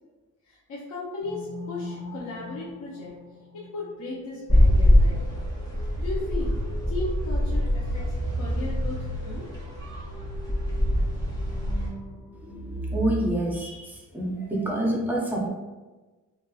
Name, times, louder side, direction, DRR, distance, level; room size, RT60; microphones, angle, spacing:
voice 1, 0.4-3.1 3.5-5.2 5.7-6.5 6.9-9.5, left 2 dB, 60° left, -6 dB, 0.6 m, -36 dB
sound 1, 1.2-13.3, equal, 35° left, 1.2 m, -41 dB
sound 2, 4.5-11.9, left 1 dB, 10° left, 1.0 m, -24 dB
voice 2, 12.9-15.5, right 1 dB, 5° right, -3 dB, 0.5 m, -27 dB
2.8 x 2.3 x 2.2 m, 1.2 s
cardioid pair, 125°, 33 cm